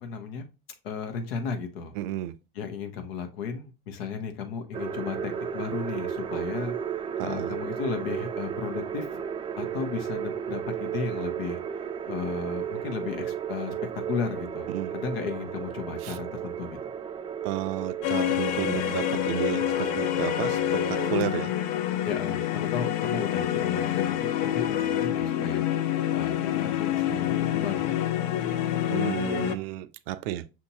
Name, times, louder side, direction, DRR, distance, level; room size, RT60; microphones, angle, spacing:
voice 1, 0.0-0.5 0.8-1.9 2.5-6.7 7.2-9.2 9.6-11.6 12.1-13.7 14.1-16.8 22.0-25.7 26.1-27.9, left 6 dB, 85° left, 1.0 m, -34 dB
voice 2, 2.0-2.3 7.2-7.6 14.7-14.9 16.0-16.2 17.4-21.5 28.9-30.5, right 13 dB, 80° right, 0.5 m, -32 dB
sound 1, 4.7-21.2, right 8 dB, 20° right, 0.3 m, -34 dB
sound 2, 18.0-29.5, left 11 dB, 65° left, 0.5 m, -27 dB
5.8 x 2.8 x 2.7 m
supercardioid pair, 95°, 29 cm